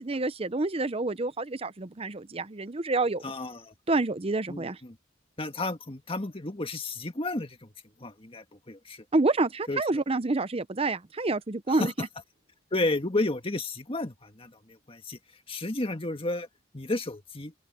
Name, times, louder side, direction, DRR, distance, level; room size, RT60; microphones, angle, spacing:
voice 1, 0.0-3.2 3.9-4.8 9.1-11.9, right 2 dB, 30° right, 0.7 m, -28 dB
voice 2, 3.2-3.7 4.5-5.0 5.4-7.7 8.0-9.0 9.7-9.8 11.7-11.9 12.7-15.2 15.5-16.5 16.7-17.5, left 2 dB, 30° left, 1.8 m, -32 dB
open air
head